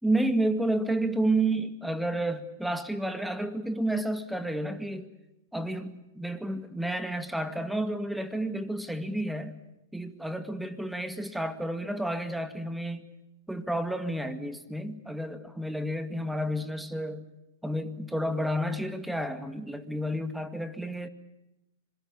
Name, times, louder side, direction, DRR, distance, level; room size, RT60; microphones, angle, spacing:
voice 1, 0.0-5.1 5.5-9.6 9.9-13.1 13.5-17.3 17.6-21.1, right 1 dB, ahead, 9 dB, 2.1 m, -30 dB
26.0 x 23.0 x 8.6 m, 0.93 s
hypercardioid pair, 115°, 0 cm